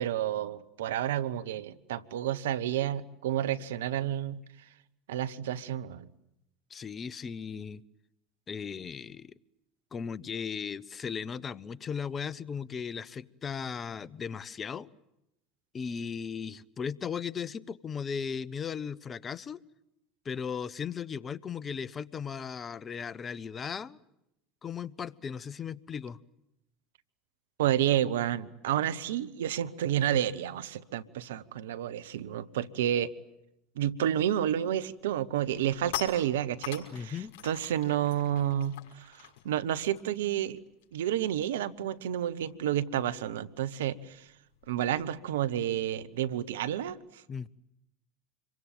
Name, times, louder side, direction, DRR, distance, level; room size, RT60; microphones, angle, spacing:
voice 1, 0.0-4.4 5.1-6.1 27.6-33.1 33.8-37.2 37.4-40.6 40.9-44.3 44.7-47.2, right 11 dB, 80° right, 1.1 m, -30 dB
voice 2, 6.7-7.8 8.5-9.3 9.9-14.9 15.7-19.6 20.2-24.0 24.6-26.2 36.9-37.3 47.3-47.5, left 6 dB, 30° left, 0.9 m, -37 dB
sound 1, 34.5-34.8 35.2-41.1 41.4-41.6 41.9-46.9, left 14 dB, 70° left, 5.7 m, -45 dB
27.0 x 23.5 x 9.0 m
hypercardioid pair, 80°, 0 cm